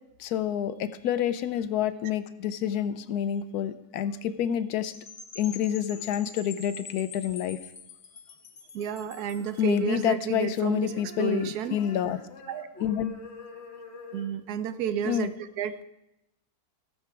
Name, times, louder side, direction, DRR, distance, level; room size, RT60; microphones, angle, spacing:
voice 1, 0.2-4.9 5.4-7.6 9.6-12.2 12.8-13.1 15.0-15.3, left 10 dB, 80° left, 13 dB, 1.2 m, -28 dB
Percussion / Wind chime, 4.8-9.5, left 5 dB, 65° left, 1.8 m, -45 dB
voice 2, 8.7-10.9 11.2-11.8 12.5-12.7 14.1-15.8, right 8 dB, 80° right, 12 dB, 1.2 m, -31 dB
sound 1, 9.0-10.4 10.7-14.3, left 3 dB, 45° left, 1.8 m, -46 dB
16.5 x 7.1 x 4.6 m, 0.90 s
omnidirectional pair, 1.6 m